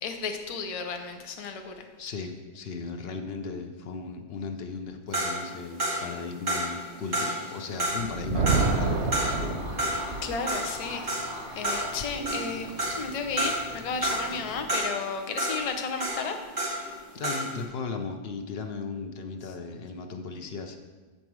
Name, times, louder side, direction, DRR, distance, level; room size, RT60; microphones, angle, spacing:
voice 1, 0.0-1.8 10.2-11.2 11.5-16.7, left 5 dB, 40° left, 5 dB, 0.6 m, -33 dB
voice 2, 2.0-9.6 17.1-20.8, left 4 dB, 70° left, 5 dB, 0.9 m, -36 dB
sound 1, 5.1-17.0 17.2-17.6, right 1 dB, 50° right, 2.5 m, -31 dB
Thunder, 7.8-10.3, right 4 dB, 80° right, 1.1 m, -28 dB
sound 2, 8.5-14.7, equal, 25° right, 1.3 m, -42 dB
7.4 x 5.4 x 4.6 m, 1.3 s
omnidirectional pair, 1.1 m